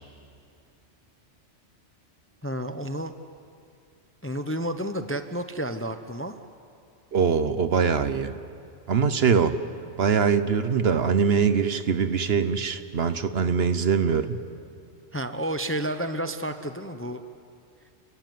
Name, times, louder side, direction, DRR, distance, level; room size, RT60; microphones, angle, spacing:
voice 1, 2.4-3.1 4.2-6.3 15.1-17.2, right 1 dB, 15° left, 8 dB, 0.6 m, -30 dB
voice 2, 7.1-8.3 8.9-9.5 10.0-14.4, right 6 dB, 60° right, 11 dB, 1.1 m, -23 dB
30.0 x 15.0 x 9.4 m, 2.4 s
omnidirectional pair, 1.3 m